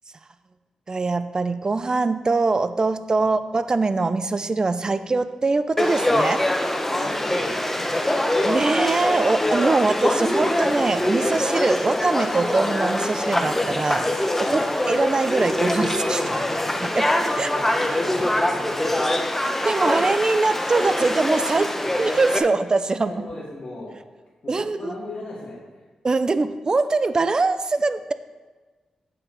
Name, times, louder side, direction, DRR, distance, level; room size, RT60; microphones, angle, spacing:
voice 1, 0.9-6.4 8.4-14.6 14.9-16.2 16.9-17.1 17.4-17.5 19.6-23.1 24.5-24.9 26.0-28.1, right 3 dB, 35° right, 12 dB, 0.5 m, -23 dB
Conversation / Crowd, 5.8-22.4, left 1 dB, 15° left, 0.9 m, -23 dB
voice 2, 6.9-8.0 14.3-14.7 16.1-16.7 17.3-19.1 21.8-21.9 23.0-23.9 24.4-25.8, left 2 dB, 50° left, -9 dB, 2.5 m, -37 dB
8.6 x 8.5 x 4.1 m, 1.3 s
cardioid pair, 70°, 2 cm